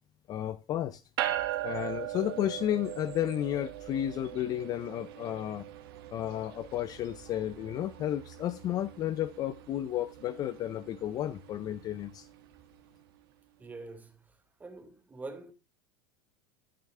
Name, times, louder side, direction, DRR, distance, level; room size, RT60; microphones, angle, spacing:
voice 1, 0.3-1.0 1.6-5.7 6.1-12.3, left 12 dB, 30° left, 0.4 m, -32 dB
sound 1, 1.2-12.8, right 13 dB, 75° right, 1.5 m, -40 dB
voice 2, 13.6-14.2 14.6-15.5, right 3 dB, 15° right, 1.1 m, -44 dB
12.5 x 6.3 x 3.2 m
supercardioid pair, 140°, 12 cm